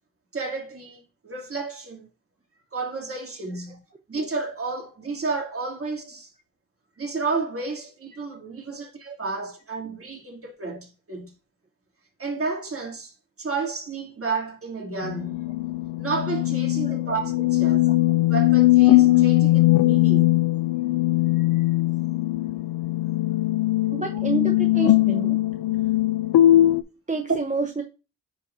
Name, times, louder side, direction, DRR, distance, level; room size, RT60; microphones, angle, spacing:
voice 1, 0.3-2.1 2.7-3.8 4.1-6.3 7.0-11.3 12.2-15.5 16.0-17.9 18.3-20.3 21.4-21.7, right 4 dB, 35° right, 3.1 m, -31 dB
sound 1, 15.0-26.8, left 16 dB, 70° left, 0.6 m, -20 dB
voice 2, 23.9-25.4 25.8-25.9 27.1-27.8, right 4 dB, 20° right, 0.9 m, -29 dB
10.0 x 4.1 x 2.8 m
cardioid pair, 65°, 38 cm